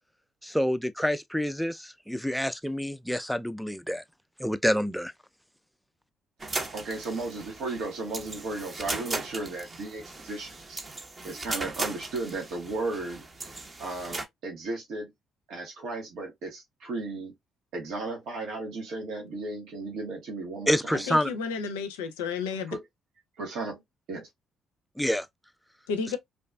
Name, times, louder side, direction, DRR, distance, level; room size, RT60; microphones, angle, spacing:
voice 1, 0.4-4.0 4.4-5.1 20.7-21.3 25.0-25.3, equal, ahead, 0.4 m, -27 dB
sound 1, 6.4-14.2, right 3 dB, 35° right, 0.7 m, -37 dB
voice 2, 6.7-10.8 11.2-13.3 13.8-15.1 15.5-17.3 17.7-21.0 22.7-22.8 23.4-23.8 24.1-24.3, right 3 dB, 70° right, 0.9 m, -35 dB
voice 3, 21.1-22.8 25.9-26.2, left 5 dB, 85° left, 0.4 m, -31 dB
2.6 x 2.3 x 2.2 m
hypercardioid pair, 50°, 0 cm